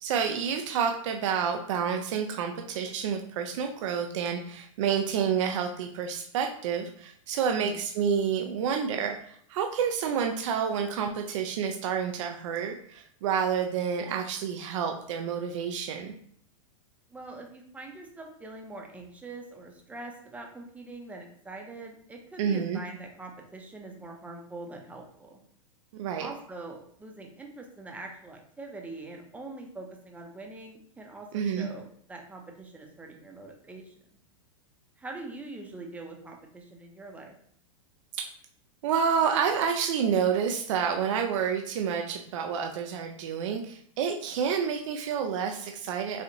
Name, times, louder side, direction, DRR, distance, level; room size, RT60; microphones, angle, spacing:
voice 1, 0.0-16.1 22.4-22.8 25.9-26.3 31.3-31.7 38.8-46.2, right 7 dB, 65° right, 4 dB, 0.5 m, -29 dB
voice 2, 7.5-7.8 17.1-25.4 26.2-33.9 35.0-37.3, right 2 dB, 10° right, 1 dB, 0.7 m, -43 dB
4.0 x 2.4 x 2.8 m, 0.63 s
hypercardioid pair, 115°, 17 cm